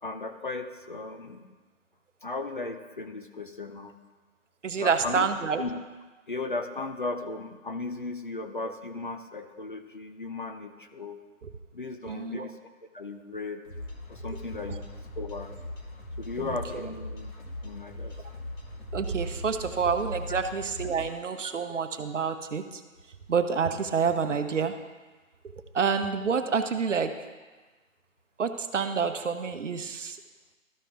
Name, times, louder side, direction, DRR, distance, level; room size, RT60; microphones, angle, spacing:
voice 1, 0.0-1.5 2.2-4.0 4.8-5.3 5.6-5.8 6.3-11.2 11.7-12.5 12.9-13.6 14.1-14.8 15.2-15.5 16.2-17.3 17.6-18.2 21.4-21.5, left 3 dB, 40° left, 6 dB, 0.5 m, -36 dB
voice 2, 4.6-5.6 11.4-11.5 12.1-12.5 14.3-14.4 16.4-16.5 18.9-22.8 23.3-24.7 25.7-27.1 28.4-30.2, right 6 dB, 60° right, 8 dB, 0.8 m, -28 dB
sound 1, 13.6-21.2, left 2 dB, 70° left, 2.0 m, -40 dB
13.5 x 4.9 x 3.4 m, 1.3 s
figure-of-eight pair, 160°, 41 cm